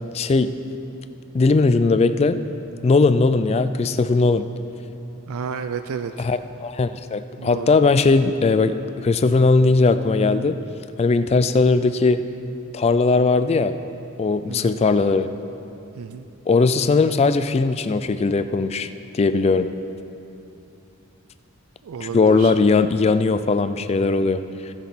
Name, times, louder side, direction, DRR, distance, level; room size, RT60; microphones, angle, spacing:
voice 1, 0.1-0.6 1.3-2.4 2.8-4.5 6.2-10.6 11.0-12.2 12.7-13.7 14.2-15.3 16.5-19.7 22.0-24.4, left 3 dB, 30° left, 11 dB, 0.3 m, -19 dB
voice 2, 5.3-6.3 7.4-7.8 14.5-14.8 16.0-16.3 21.8-22.5, right 6 dB, 85° right, 9 dB, 0.4 m, -31 dB
17.5 x 6.0 x 4.3 m, 2.8 s
head